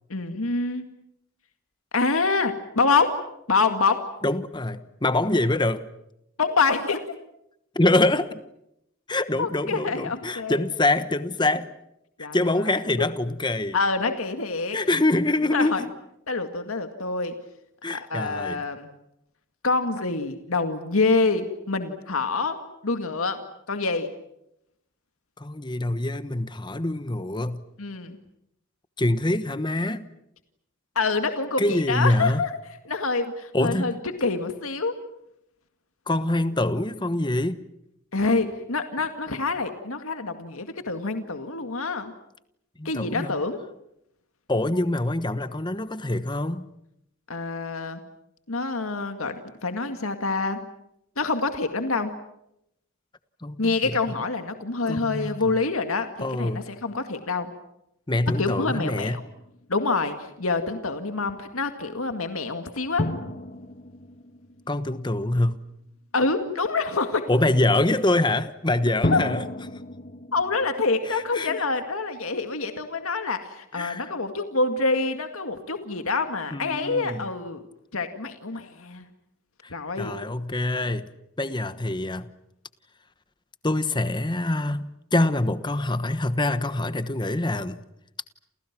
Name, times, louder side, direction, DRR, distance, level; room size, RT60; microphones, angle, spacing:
voice 1, 0.1-0.8 1.9-3.2 3.5-4.0 6.4-7.0 9.4-10.6 12.2-12.4 13.0-13.1 13.7-14.8 15.5-15.8 16.3-17.3 17.9-18.9 19.6-22.6 22.8-23.4 23.7-24.1 27.8-28.2 31.0-32.5 32.9-33.9 34.2-34.9 38.1-42.1 42.8-43.6 47.3-48.0 48.5-50.6 51.2-52.1 53.6-57.5 58.4-59.2 59.7-63.1 66.1-67.2 69.1-69.2 70.3-77.6 77.9-79.1 79.7-80.2, left 3 dB, 85° left, 7 dB, 2.1 m, -26 dB
voice 2, 4.2-5.8 7.7-8.4 9.1-11.7 12.3-13.8 14.7-15.9 17.8-18.6 25.4-27.6 29.0-30.1 31.6-32.4 33.5-34.0 36.1-37.6 42.8-43.3 44.5-46.7 53.4-53.6 53.8-54.0 54.9-55.5 56.2-56.6 58.1-59.2 64.7-65.6 67.3-69.4 71.1-71.6 73.7-74.1 76.5-77.3 79.6-81.1 81.4-82.3 83.6-87.8, left 2 dB, 20° left, 12 dB, 1.2 m, -25 dB
Drum, 55.0-55.7 58.3-60.0 63.0-65.5 69.0-72.2, left 1 dB, 40° left, 1.6 m, -34 dB
29.5 x 29.0 x 6.1 m, 0.80 s
head